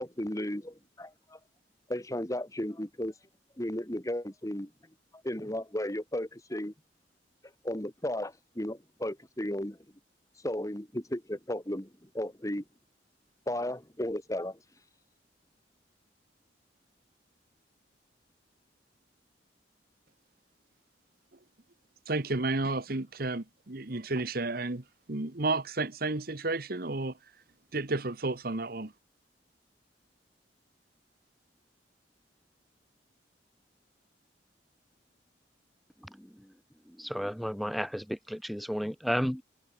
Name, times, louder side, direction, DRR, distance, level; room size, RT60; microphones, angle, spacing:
voice 1, 0.0-1.4 1.9-3.1 3.6-4.7 5.2-6.7 7.6-9.8 10.4-11.9 12.1-12.6 13.5-14.6, left 1 dB, 20° left, 2.4 m, -34 dB
voice 2, 22.1-27.2 27.7-28.9, right 2 dB, 55° right, 1.4 m, -32 dB
voice 3, 36.0-36.5 36.9-39.4, equal, ahead, 0.6 m, -33 dB
head